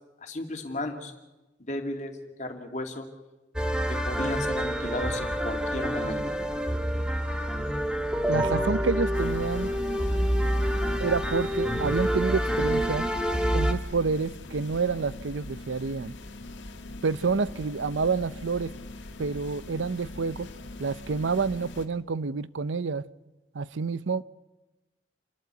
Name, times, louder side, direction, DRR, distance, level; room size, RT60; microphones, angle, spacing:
voice 1, 0.2-1.1 1.6-3.1 3.9-6.4, left 1 dB, 40° left, 4 dB, 2.3 m, -34 dB
sound 1, 3.6-13.7, equal, 5° right, 1.3 m, -27 dB
voice 2, 8.3-9.7 11.0-13.1 13.5-16.1 17.0-18.7 19.2-20.5 20.8-23.1 23.5-24.2, right 4 dB, 90° right, 17 dB, 0.6 m, -28 dB
sound 2, 9.1-21.9, left 2 dB, 85° left, 1.6 m, -42 dB
28.5 x 12.0 x 8.1 m, 1.1 s
head